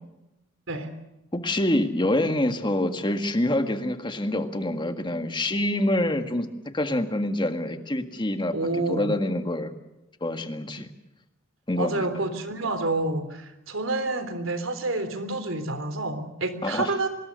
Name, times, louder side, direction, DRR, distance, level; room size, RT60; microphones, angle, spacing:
voice 1, 1.3-6.5 6.7-8.6 8.9-9.7 10.2-10.9 11.7-12.2 16.6-16.9, left 1 dB, 25° left, 7 dB, 1.8 m, -26 dB
voice 2, 8.5-9.1 11.8-17.1, right 2 dB, 75° right, 10 dB, 3.5 m, -28 dB
25.0 x 20.5 x 6.6 m, 0.96 s
head